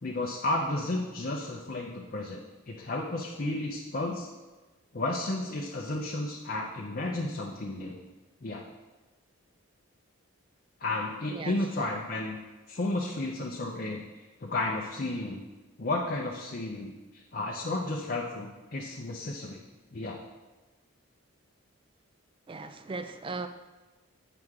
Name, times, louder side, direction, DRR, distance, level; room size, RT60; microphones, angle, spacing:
voice 1, 0.0-2.4 2.7-4.3 4.9-8.0 8.4-8.6 10.8-12.4 12.7-14.0 14.4-15.4 15.8-19.6 19.9-20.2, left 2 dB, 45° left, -1 dB, 0.6 m, -32 dB
voice 2, 11.3-11.9 22.5-23.5, right 3 dB, 25° right, 9 dB, 0.3 m, -38 dB
7.8 x 6.3 x 3.6 m, 1.2 s
head